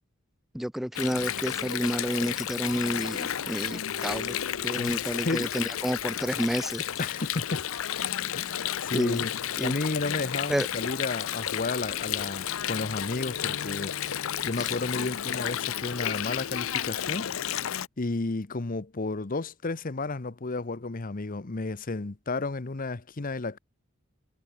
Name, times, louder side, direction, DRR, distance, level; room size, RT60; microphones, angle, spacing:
voice 1, 0.5-4.3 4.6-6.8 8.9-9.2 9.6-9.7 10.5-10.7 14.6-14.7, equal, ahead, 0.3 m, -30 dB
Water, 0.9-17.9, left 10 dB, 80° left, 0.6 m, -32 dB
voice 2, 4.8-5.5 7.0-7.7 8.3-9.3 9.6-17.3 18.0-23.6, left 3 dB, 40° left, 0.9 m, -32 dB
head